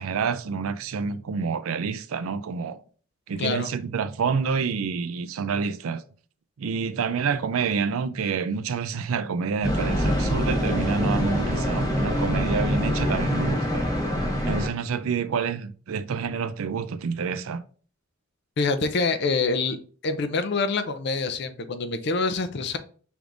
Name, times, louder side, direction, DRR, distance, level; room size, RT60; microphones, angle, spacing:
voice 1, 0.0-2.8 3.3-6.0 6.6-13.9 14.5-17.6, right 5 dB, 85° right, 0.4 m, -28 dB
voice 2, 3.4-3.7 18.6-19.8 20.0-22.8, left 4 dB, 50° left, 0.5 m, -26 dB
sound 1, 9.6-14.7, equal, 20° left, 1.0 m, -25 dB
6.1 x 3.4 x 2.5 m
head